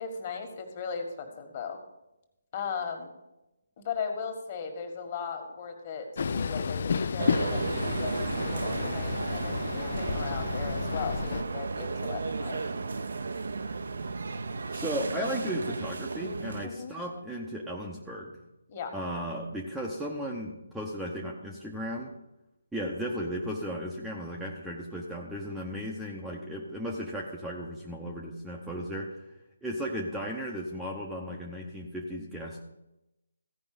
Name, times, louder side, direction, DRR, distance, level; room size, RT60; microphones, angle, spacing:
voice 1, 0.0-1.8 2.5-3.1 3.8-12.6 16.6-17.0 18.7-18.9, left 6 dB, 35° left, 4 dB, 1.8 m, -37 dB
Train, 6.2-11.4, left 6 dB, 50° left, 0.4 m, -31 dB
sound 1, 7.2-16.7, right 4 dB, 65° right, 0.7 m, -34 dB
voice 2, 14.7-18.4 18.9-22.1 22.7-29.2 29.6-32.6, equal, ahead, -4 dB, 0.8 m, -35 dB
15.0 x 5.3 x 5.1 m, 0.92 s
figure-of-eight pair, 150°, 0 cm